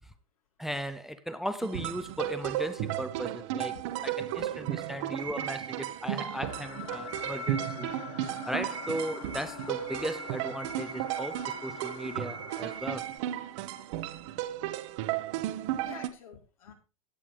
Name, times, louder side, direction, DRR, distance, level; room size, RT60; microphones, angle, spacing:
voice 1, 0.6-3.7 4.0-4.4 4.9-7.9 8.5-13.1, equal, ahead, 0.6 m, -36 dB
sound 1, 1.6-16.1, right 13 dB, 55° right, 1.1 m, -35 dB
sound 2, 4.2-13.2, right 6 dB, 20° right, 1.8 m, -44 dB
sound 3, 6.3-12.8, left 8 dB, 45° left, 1.5 m, -44 dB
voice 2, 15.7-16.7, left 7 dB, 75° left, 3.7 m, -49 dB
16.5 x 8.5 x 3.3 m
hypercardioid pair, 115°, 18 cm